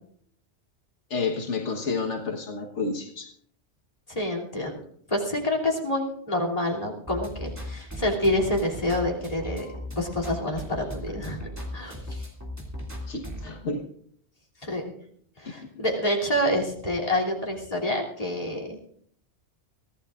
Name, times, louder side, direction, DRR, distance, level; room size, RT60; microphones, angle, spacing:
voice 1, 1.1-3.3 13.1-13.8, left 4 dB, 80° left, 2 dB, 1.7 m, -30 dB
voice 2, 4.1-4.8 5.1-11.4 11.7-12.3 14.6-14.8 15.4-18.8, left 1 dB, 30° left, 0 dB, 3.1 m, -27 dB
sound 1, 7.1-13.6, equal, 15° right, 2.7 m, -37 dB
23.5 x 16.0 x 2.5 m, 0.64 s
omnidirectional pair, 1.2 m